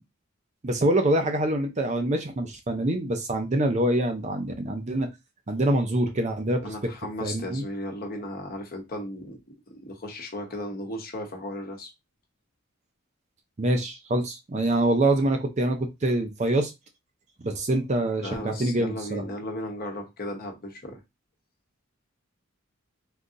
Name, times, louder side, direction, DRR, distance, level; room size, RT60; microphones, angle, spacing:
voice 1, 0.6-5.1 5.5-6.7 7.2-7.6 13.6-16.7 17.4-19.2, right 1 dB, 35° right, 0.5 m, -25 dB
voice 2, 6.6-9.4 9.7-11.9 18.2-21.0, left 1 dB, 45° left, 0.9 m, -35 dB
3.8 x 2.8 x 2.5 m
head